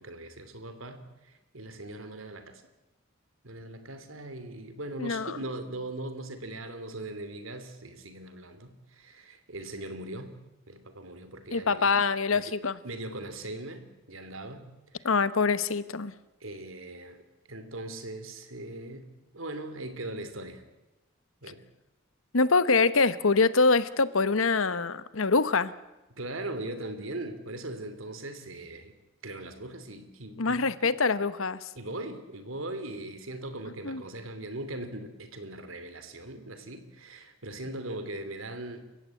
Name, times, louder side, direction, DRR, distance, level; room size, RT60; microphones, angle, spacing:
voice 1, 0.0-2.6 3.4-10.4 10.7-11.9 12.3-12.5 12.8-15.1 16.4-20.7 21.4-21.6 26.1-28.9 29.2-30.6 31.7-38.9, right 1 dB, 80° right, 10 dB, 2.9 m, -40 dB
voice 2, 5.0-5.4 11.5-12.8 15.0-16.1 22.3-25.7 30.4-31.7 33.8-34.0, left 4 dB, 85° left, 15 dB, 1.1 m, -24 dB
29.0 x 15.5 x 8.4 m, 1.0 s
head